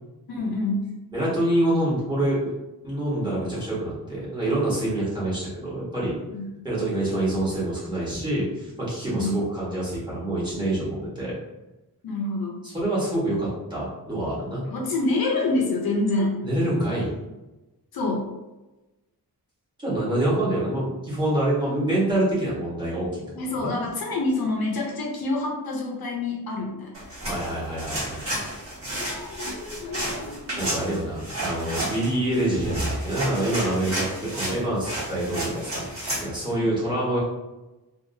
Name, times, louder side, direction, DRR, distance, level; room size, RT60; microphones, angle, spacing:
voice 1, 0.3-0.9 6.3-6.4 9.1-9.3 12.0-12.6 14.7-16.4 17.9-18.3 23.4-27.0 29.0-30.9 36.5-36.7, left 2 dB, 75° left, -1 dB, 0.7 m, -27 dB
voice 2, 1.1-2.5 2.8-6.2 6.6-11.4 12.6-14.6 16.4-17.1 19.8-23.2 23.5-23.7 27.3-28.2 30.6-35.8 36.2-37.2, right 1 dB, 10° right, -9 dB, 1.2 m, -26 dB
sound 1, 26.9-36.3, right 1 dB, 35° right, 1.1 m, -31 dB
2.8 x 2.4 x 2.6 m, 1.1 s
wide cardioid pair, 145°, 37 cm